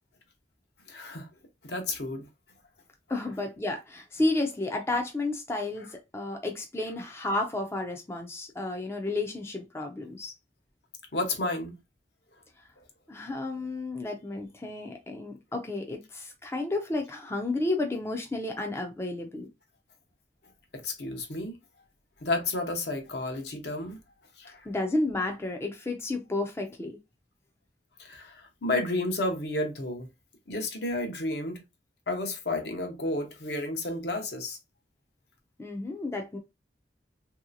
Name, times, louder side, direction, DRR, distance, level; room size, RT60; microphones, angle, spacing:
voice 1, 0.9-1.3 1.6-2.3 11.1-11.8 20.7-21.6 22.2-24.0 24.4-24.7 28.0-30.1 30.5-31.6 32.1-34.6, left 2 dB, 60° left, 0.8 m, -31 dB
voice 2, 3.1-10.3 13.1-19.5 24.7-27.0 35.6-36.4, left 2 dB, 15° left, 0.4 m, -32 dB
3.1 x 2.8 x 2.5 m
head